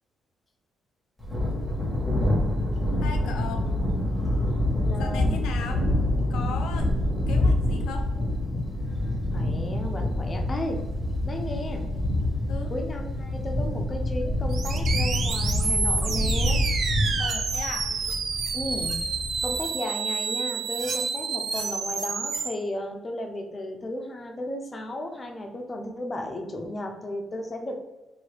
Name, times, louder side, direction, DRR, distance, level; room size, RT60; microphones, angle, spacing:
Thunder, 1.2-19.6, left 1 dB, 5° left, 1.2 m, -26 dB
voice 1, 3.0-3.7 5.0-5.8 6.3-8.1 12.5-12.7 17.2-17.9, left 5 dB, 85° left, 5 dB, 0.3 m, -37 dB
voice 2, 4.8-5.3 9.3-10.8 11.3-11.9 12.7-16.6 18.5-19.0 19.4-27.8, left 1 dB, 30° left, 3 dB, 0.6 m, -34 dB
sound 1, 14.5-22.5, right 5 dB, 60° right, 0.5 m, -29 dB
2.7 x 2.7 x 3.2 m, 1.1 s
cardioid pair, 90°, 0 cm